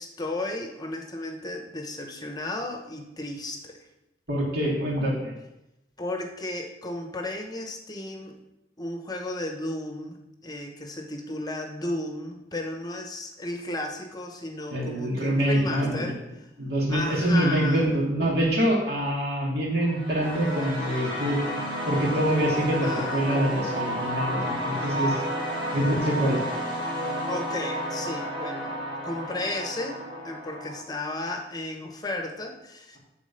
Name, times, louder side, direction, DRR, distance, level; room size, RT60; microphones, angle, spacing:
voice 1, 0.0-3.9 6.0-8.4 8.8-10.2 10.4-16.5 16.9-17.9 22.8-23.3 27.3-28.8 29.0-33.0, left 2 dB, 25° left, 3 dB, 0.9 m, -34 dB
voice 2, 4.3-5.3 14.7-16.2 16.6-21.4 21.9-25.2 25.7-26.4, right 1 dB, 65° right, -4 dB, 2.9 m, -25 dB
sound 1, 19.8-30.8, equal, 45° right, 2.5 m, -31 dB
9.8 x 4.2 x 6.9 m, 0.93 s
head